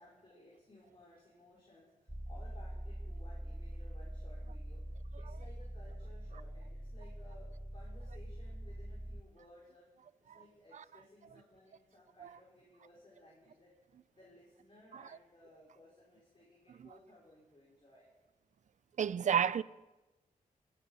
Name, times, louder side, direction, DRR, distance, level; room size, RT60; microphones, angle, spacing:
voice 1, 0.0-4.8 5.1-9.9 10.2-13.7 14.2-18.1, left 1 dB, 40° left, 4.8 m, -60 dB
sound 1, 2.1-9.2, equal, 5° right, 0.4 m, -44 dB
voice 2, 19.0-19.6, right 8 dB, 60° right, 0.4 m, -30 dB
22.5 x 8.6 x 5.4 m
wide cardioid pair, 90°, 14 cm